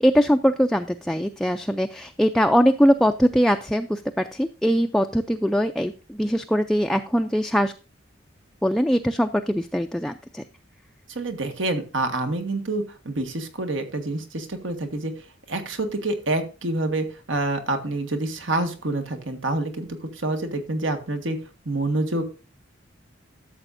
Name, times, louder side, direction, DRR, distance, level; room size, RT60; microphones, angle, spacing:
voice 1, 0.0-7.7 8.6-10.4, equal, ahead, 5 dB, 0.3 m, -21 dB
voice 2, 11.1-15.1 15.5-21.4 21.6-22.2, right 2 dB, 85° right, 6 dB, 1.6 m, -27 dB
13.0 x 7.0 x 2.6 m, 0.34 s
head